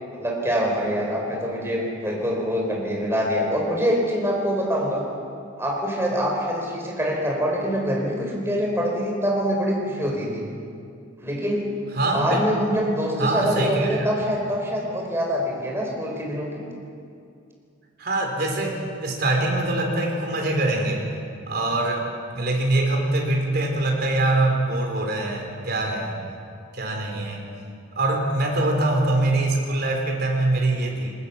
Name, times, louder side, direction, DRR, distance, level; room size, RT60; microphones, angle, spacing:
voice 1, 0.2-5.0 5.6-10.5 11.2-11.6 12.1-16.7, equal, 10° right, -1 dB, 4.5 m, -25 dB
voice 2, 11.9-12.4 13.2-14.1 18.0-21.0 21.5-22.1 22.3-26.2 26.7-27.5 27.9-31.1, right 2 dB, 50° right, 1 dB, 4.1 m, -23 dB
21.0 x 19.5 x 7.2 m, 2.4 s
head